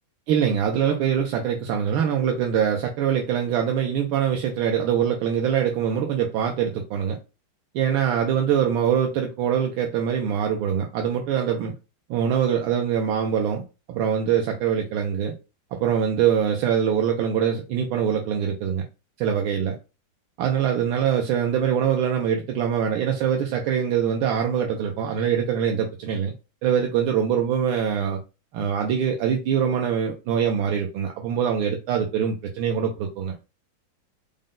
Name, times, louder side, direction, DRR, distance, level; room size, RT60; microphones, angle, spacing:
voice 1, 0.3-7.2 7.7-11.7 12.1-15.3 15.7-18.8 19.2-19.7 20.4-26.3 26.6-28.2 28.5-33.3, right 8 dB, 85° right, 1.4 m, -23 dB
5.0 x 2.1 x 3.7 m
omnidirectional pair, 2.2 m